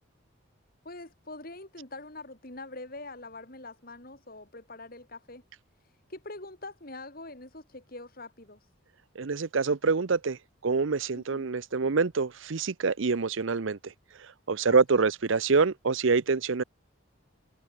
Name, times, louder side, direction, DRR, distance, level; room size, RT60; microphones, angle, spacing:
voice 1, 0.8-5.4 5.8-8.7 11.1-11.5 14.7-15.1, left 2 dB, 45° left, 3.8 m, -44 dB
voice 2, 9.2-10.4 10.6-13.9 14.5-16.6, right 4 dB, 65° right, 0.7 m, -26 dB
head